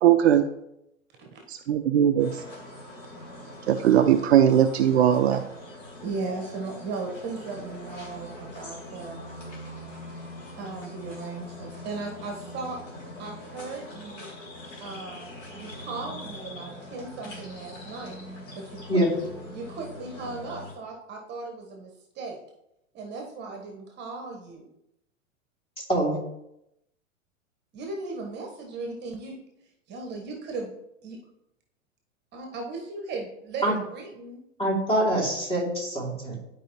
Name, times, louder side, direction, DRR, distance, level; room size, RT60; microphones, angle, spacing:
voice 1, 0.0-0.5 1.5-2.3 3.7-5.4, right 10 dB, 55° right, 9 dB, 0.6 m, -19 dB
sound 1, 2.2-20.7, left 1 dB, 35° left, 2.8 m, -42 dB
voice 2, 6.0-9.2 10.5-12.8 13.2-14.3 14.8-18.2 18.6-19.0 19.5-22.4 22.9-24.7 27.7-29.3 29.9-30.7 31.0-31.2 32.3-34.4, right 3 dB, 25° right, 2 dB, 1.3 m, -37 dB
voice 3, 25.8-26.2 33.6-33.8 34.6-36.4, right 1 dB, 15° left, -3 dB, 2.7 m, -25 dB
11.5 x 4.8 x 3.0 m, 0.83 s
figure-of-eight pair, 100°, 39 cm